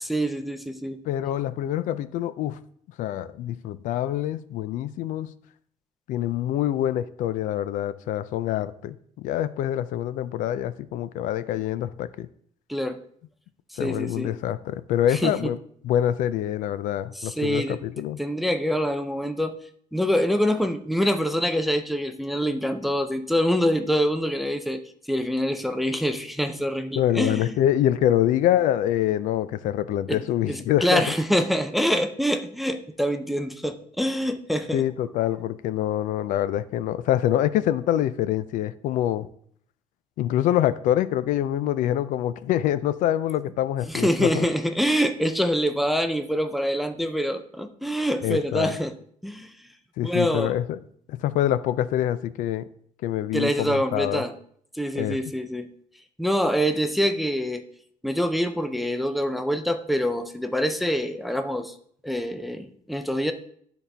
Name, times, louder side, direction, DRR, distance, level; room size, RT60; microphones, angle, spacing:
voice 1, 0.0-1.0 12.7-13.0 13.7-14.3 15.1-15.4 17.1-17.8 18.2-19.6 19.9-24.8 25.1-27.5 30.1-30.2 30.5-34.8 43.9-48.9 49.2-49.5 50.0-50.5 53.3-54.3 54.7-55.7 56.2-57.6 58.0-61.7 62.0-63.3, equal, ahead, 0.4 m, -25 dB
voice 2, 1.1-2.6 3.0-5.3 6.1-12.3 13.8-15.6 15.8-18.2 26.9-31.0 34.7-39.3 40.2-44.5 48.2-48.7 50.0-50.8 51.1-52.6 53.0-54.2 55.0-55.2, left 12 dB, 70° left, 0.4 m, -25 dB
12.5 x 4.1 x 3.4 m
cardioid pair, 170°, 14 cm